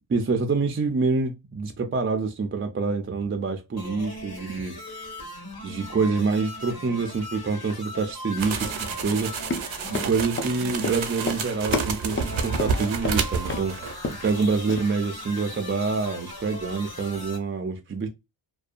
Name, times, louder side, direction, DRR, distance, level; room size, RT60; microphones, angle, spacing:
voice 1, 0.1-4.8 5.6-9.3 9.9-13.9 14.2-18.1, right 4 dB, 30° right, 0.4 m, -26 dB
sound 1, 3.8-17.4, left 1 dB, 50° left, 1.4 m, -39 dB
sound 2, 8.4-14.0 14.2-14.4, right 5 dB, 70° right, 0.6 m, -30 dB
Run, 9.4-13.2 13.5-13.7 13.9-14.3 14.7-14.8, left 2 dB, 25° left, 0.5 m, -30 dB
2.6 x 2.1 x 2.4 m
wide cardioid pair, 85°, 49 cm